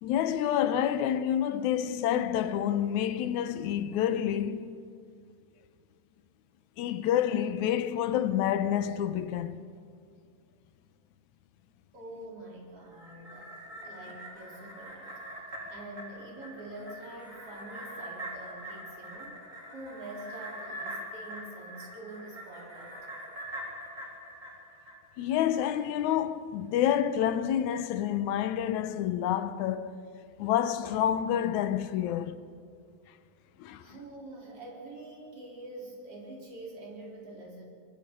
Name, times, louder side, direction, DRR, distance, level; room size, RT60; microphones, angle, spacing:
voice 1, 0.0-4.8 6.8-9.6 25.2-30.0 30.4-32.4 33.6-33.9, left 10 dB, 80° left, 2.2 m, -28 dB
voice 2, 11.9-15.2 15.7-19.4 19.7-23.0 33.8-37.7, right 2 dB, 50° right, 4.9 m, -45 dB
sound 1, 12.8-25.4 25.8-25.9, right 1 dB, 25° right, 4.3 m, -43 dB
25.5 x 20.5 x 5.4 m
omnidirectional pair, 3.3 m